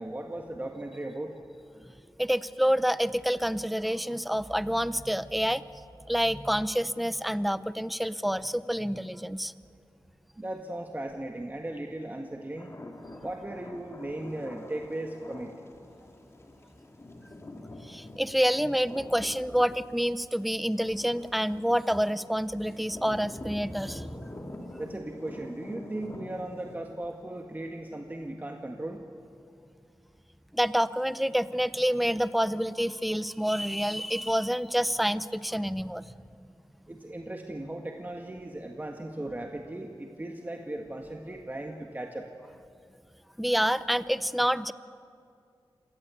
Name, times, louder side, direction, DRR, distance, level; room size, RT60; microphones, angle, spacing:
voice 1, 0.0-1.3 10.4-12.7 13.2-15.5 24.8-29.0 36.9-42.3, right 1 dB, 20° right, 3 dB, 1.7 m, -37 dB
voice 2, 2.2-5.6 6.1-9.5 17.8-24.5 30.5-36.1 43.4-44.7, equal, ahead, 15 dB, 0.7 m, -28 dB
sound 1, 12.6-26.8, left 1 dB, 30° left, 2.7 m, -46 dB
27.0 x 18.5 x 8.5 m, 2.4 s
wide cardioid pair, 80°, 9 cm